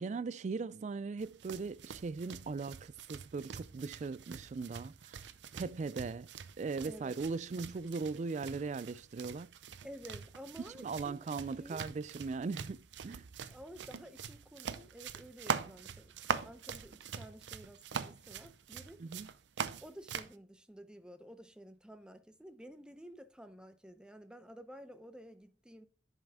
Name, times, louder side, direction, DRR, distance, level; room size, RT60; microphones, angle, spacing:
voice 1, 0.0-6.3 6.6-9.5 10.8-13.2 19.0-19.3, right 4 dB, 40° right, 0.3 m, -39 dB
sound 1, 1.2-20.3, right 6 dB, 85° right, 0.6 m, -43 dB
voice 2, 6.8-7.1 9.8-11.8 13.5-19.0 19.8-25.9, equal, 5° right, 0.7 m, -52 dB
10.5 x 5.6 x 3.6 m
head